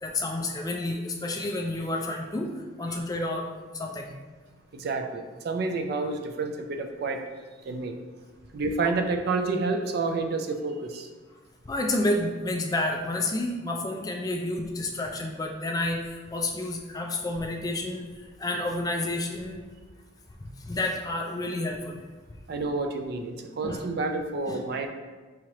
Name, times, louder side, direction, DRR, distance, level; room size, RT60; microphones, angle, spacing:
voice 1, 0.0-2.5 2.8-3.5 3.7-4.1 11.7-19.6 20.4-22.0 23.6-23.8 24.5-24.6, left 2 dB, 20° left, 1 dB, 0.3 m, -30 dB
voice 2, 4.7-7.2 7.7-8.0 8.5-11.1 22.5-24.9, right 3 dB, 55° right, 5 dB, 0.4 m, -29 dB
4.7 x 2.9 x 3.0 m, 1.3 s
head